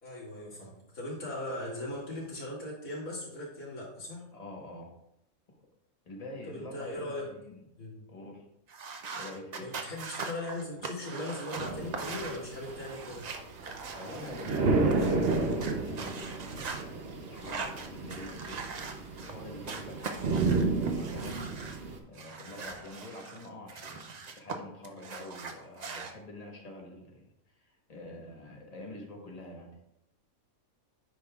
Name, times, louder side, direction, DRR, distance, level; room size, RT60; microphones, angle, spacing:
voice 1, 0.0-4.3 6.4-7.3 7.8-8.1 9.6-13.3, left 1 dB, 70° left, -6 dB, 2.6 m, -39 dB
voice 2, 4.3-5.0 6.0-7.6 8.1-8.5 9.1-9.7 13.9-18.7 19.2-21.6 22.1-29.8, left 1 dB, 30° left, 0 dB, 1.2 m, -46 dB
sound 1, 8.7-14.6 14.9-16.8 17.3-19.3 19.7-21.8 22.1-24.6 24.8-26.1, right 4 dB, 75° right, 0.3 m, -41 dB
sound 2, 11.6-22.0, right 3 dB, 55° right, 0.8 m, -32 dB
8.9 x 5.3 x 2.4 m, 0.82 s
omnidirectional pair, 1.5 m